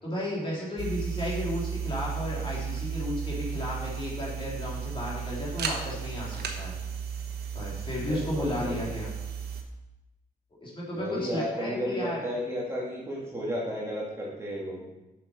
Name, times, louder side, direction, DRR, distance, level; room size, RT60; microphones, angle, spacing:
voice 1, 0.0-6.7 7.5-9.1 10.6-12.2, left 1 dB, 30° left, -6 dB, 3.5 m, -33 dB
sound 1, 0.8-9.6, right 7 dB, 85° right, 1.1 m, -34 dB
voice 2, 8.1-8.8 10.9-14.9, equal, 15° right, -5 dB, 2.1 m, -33 dB
7.7 x 6.9 x 5.2 m, 0.98 s
wide cardioid pair, 120°, 16 cm